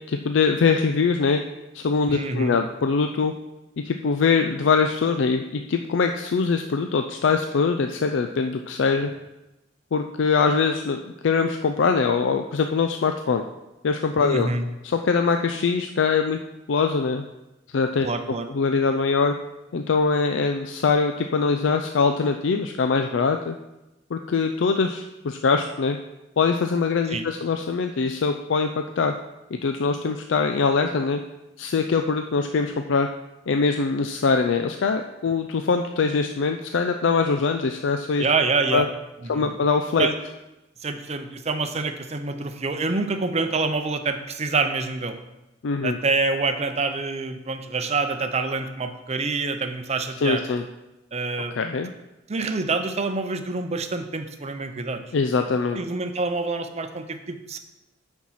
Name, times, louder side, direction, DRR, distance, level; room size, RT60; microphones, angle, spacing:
voice 1, 0.1-1.4 1.7-3.3 3.8-9.1 9.9-13.4 13.8-14.5 14.8-16.4 16.7-17.2 17.7-18.1 18.5-19.3 19.7-23.6 24.1-26.0 26.4-29.1 29.6-31.2 31.6-33.1 33.5-38.3 38.7-38.9 39.3-40.1 45.6-46.0 50.2-50.6 51.5-51.9 55.1-55.8, left 4 dB, 75° left, 6 dB, 0.4 m, -22 dB
voice 2, 2.1-2.6 14.2-14.7 18.0-18.5 27.1-27.2 38.2-38.9 39.2-39.5 40.0-40.1 40.8-45.2 45.8-50.4 51.1-51.5 52.3-55.0 55.8-57.6, right 3 dB, 35° right, 7 dB, 0.6 m, -26 dB
8.4 x 4.5 x 5.7 m, 0.97 s
head